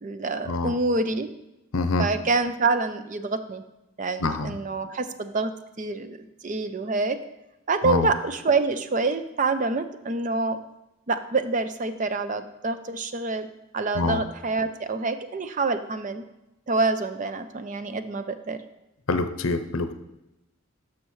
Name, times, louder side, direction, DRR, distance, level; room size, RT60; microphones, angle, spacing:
voice 1, 0.0-1.3 2.0-3.6 4.0-5.5 5.8-7.2 7.7-10.6 11.1-13.5 13.7-16.2 16.7-18.6, right 3 dB, 35° right, 10 dB, 0.5 m, -26 dB
voice 2, 1.7-2.1 4.2-4.5 7.8-8.1 13.9-14.2 19.1-19.9, left 3 dB, 75° left, 10 dB, 0.6 m, -25 dB
12.0 x 6.3 x 3.1 m, 0.91 s
head